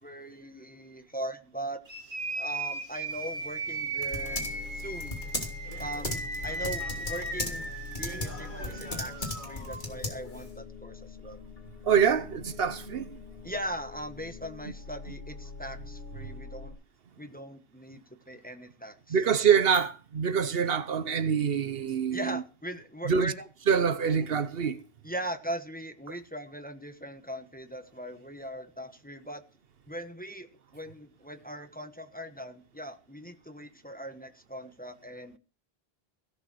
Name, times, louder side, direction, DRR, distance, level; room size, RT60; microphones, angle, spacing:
voice 1, 0.0-1.8 2.4-4.5 4.7-5.2 5.8-6.1 6.4-7.7 8.0-11.4 13.4-16.7 17.2-19.2 22.1-23.4 25.0-29.4 29.9-35.4, right 1 dB, 10° left, 1.2 m, -40 dB
sound 1, 1.9-9.8, right 2 dB, 55° right, 2.3 m, -37 dB
Typing, 3.1-10.5, left 2 dB, 50° left, 3.2 m, -38 dB
sound 2, 4.1-16.7, left 4 dB, 70° left, 2.3 m, -44 dB
voice 2, 11.8-13.2 19.1-22.4 23.1-23.3 23.7-24.8, right 7 dB, 70° right, 1.1 m, -25 dB
16.5 x 7.1 x 6.1 m
omnidirectional pair, 1.0 m